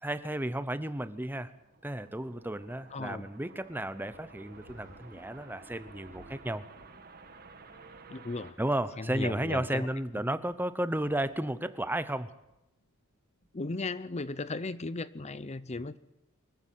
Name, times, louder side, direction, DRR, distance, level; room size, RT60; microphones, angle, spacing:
voice 1, 0.0-1.5 1.8-6.7 8.6-12.3, right 1 dB, 10° right, 0.9 m, -33 dB
sound 1, 1.5-9.6, right 4 dB, 45° right, 1.9 m, -54 dB
voice 2, 2.9-3.3 8.1-8.6 9.0-9.9 13.5-16.0, left 3 dB, 30° left, 0.6 m, -36 dB
sound 2, 4.1-14.1, equal, 60° left, 4.9 m, -60 dB
24.0 x 15.0 x 7.7 m
head